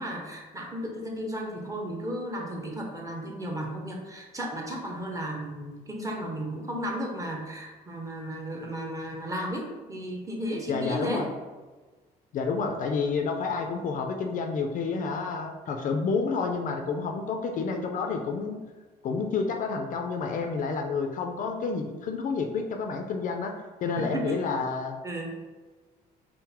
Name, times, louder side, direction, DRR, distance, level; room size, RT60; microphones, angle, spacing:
voice 1, 0.0-11.3 24.1-24.4 25.0-25.3, equal, 20° right, 0 dB, 0.7 m, -34 dB
voice 2, 10.7-11.3 12.3-18.6 19.0-23.5 23.8-25.0, left 4 dB, 50° left, 4 dB, 0.5 m, -29 dB
3.8 x 2.0 x 4.2 m, 1.3 s
cardioid pair, 110°, 17 cm